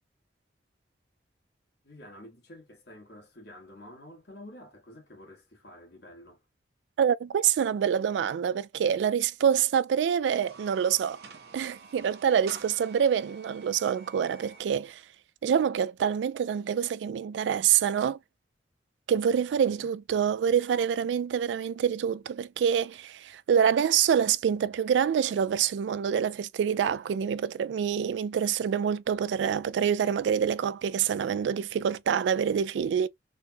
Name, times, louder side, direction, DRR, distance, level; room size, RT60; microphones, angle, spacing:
voice 1, 1.8-6.4 19.6-19.9, left 1 dB, 70° left, 1.8 m, -49 dB
voice 2, 7.0-11.2 11.5-15.0 15.4-18.2 19.1-33.1, right 8 dB, 90° right, 0.3 m, -26 dB
sound 1, 10.3-14.7, right 4 dB, 65° right, 0.8 m, -49 dB
3.9 x 2.3 x 2.6 m
head